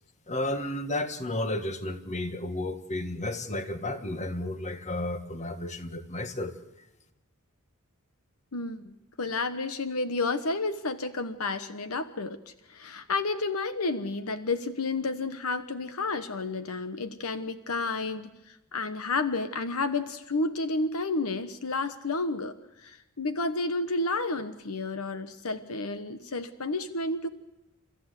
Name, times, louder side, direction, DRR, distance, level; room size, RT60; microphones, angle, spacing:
voice 1, 0.3-6.5, left 1 dB, 30° left, 9 dB, 1.5 m, -32 dB
voice 2, 8.5-27.3, left 3 dB, 70° left, 11 dB, 1.1 m, -31 dB
29.5 x 14.0 x 8.2 m, 0.94 s
head